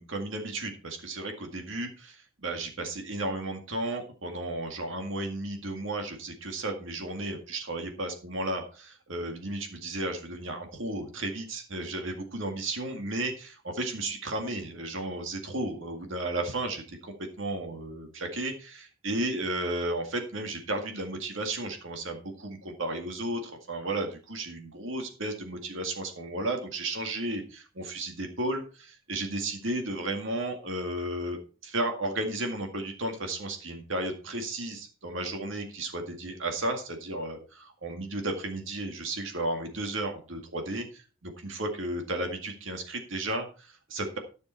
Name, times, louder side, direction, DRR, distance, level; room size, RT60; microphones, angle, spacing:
voice 1, 0.0-44.2, right 2 dB, 65° right, 4 dB, 2.0 m, -34 dB
13.5 x 6.9 x 4.5 m, 0.35 s
head